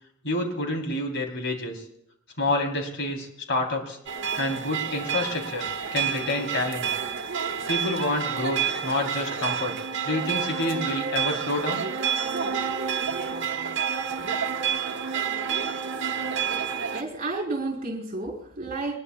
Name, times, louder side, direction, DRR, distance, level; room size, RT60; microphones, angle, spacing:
voice 1, 0.2-1.8 2.4-4.0 4.4-5.6 5.9-6.9 7.7-9.7 10.1-11.8, left 1 dB, 60° left, 2 dB, 3.5 m, -28 dB
sound 1, 4.1-17.0, right 7 dB, 60° right, 1.3 m, -29 dB
voice 2, 16.9-19.0, right 2 dB, 45° right, 2 dB, 3.8 m, -31 dB
22.0 x 20.5 x 2.3 m, 0.78 s
head